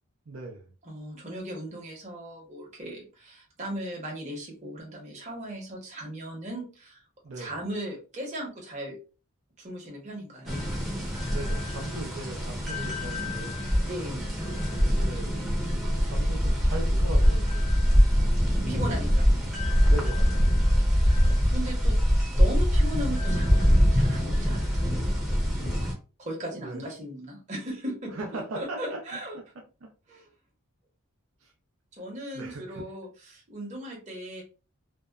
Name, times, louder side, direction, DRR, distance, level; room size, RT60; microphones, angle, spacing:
voice 1, 0.3-0.7 7.2-7.5 11.3-13.6 14.8-15.4 16.0-17.7 19.9-20.5 26.6-26.8 28.1-29.0 29.3-29.4 29.8-29.9 31.4-31.5 32.3-32.8, right 2 dB, 70° right, 0.5 m, -38 dB
voice 2, 0.8-7.0 7.4-9.0 9.6-10.6 13.8-14.3 18.7-19.3 20.9-25.0 26.2-28.2 28.5-29.4 30.1-30.3 32.0-34.4, equal, 30° right, 0.8 m, -37 dB
sound 1, 10.5-25.9, equal, ahead, 0.6 m, -23 dB
2.7 x 2.1 x 2.3 m
head